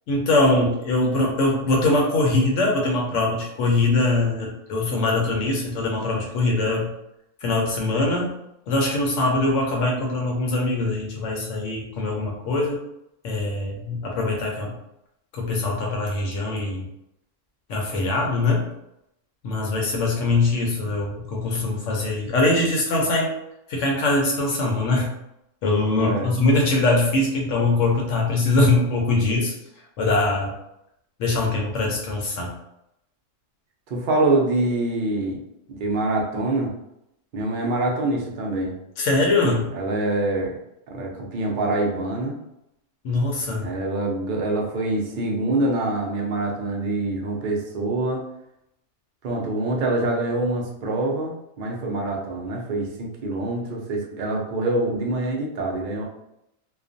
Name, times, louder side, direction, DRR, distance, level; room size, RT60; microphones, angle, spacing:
voice 1, 0.1-6.9 7.4-8.3 8.7-12.8 13.2-14.7 15.3-16.8 17.7-18.7 19.4-23.3 23.7-25.1 25.6-29.5 30.0-30.5 31.2-32.5 39.0-39.7 43.0-43.7, left 2 dB, 75° left, -1 dB, 0.9 m, -22 dB
voice 2, 26.0-26.3 33.9-35.4 35.7-36.7 37.3-38.7 39.7-40.6 40.9-42.4 43.6-48.2 49.2-56.0, right 2 dB, 60° right, 0 dB, 0.5 m, -25 dB
2.4 x 2.2 x 2.5 m, 0.83 s
omnidirectional pair, 1.3 m